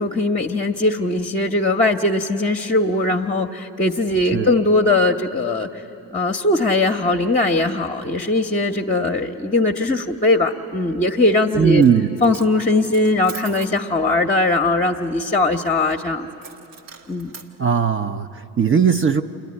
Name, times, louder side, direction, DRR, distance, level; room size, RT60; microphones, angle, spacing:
voice 1, 0.0-5.8 6.1-11.8 12.2-16.3 17.1-17.3, left 2 dB, 15° left, 1 dB, 0.8 m, -20 dB
voice 2, 11.6-12.2 17.6-19.2, right 7 dB, 30° right, 7 dB, 0.6 m, -18 dB
Coin (dropping), 11.7-12.0 12.2-13.8 16.4-17.5, right 5 dB, 85° right, 1.3 m, -40 dB
27.5 x 10.5 x 9.6 m, 3.0 s
hypercardioid pair, 50°, 45 cm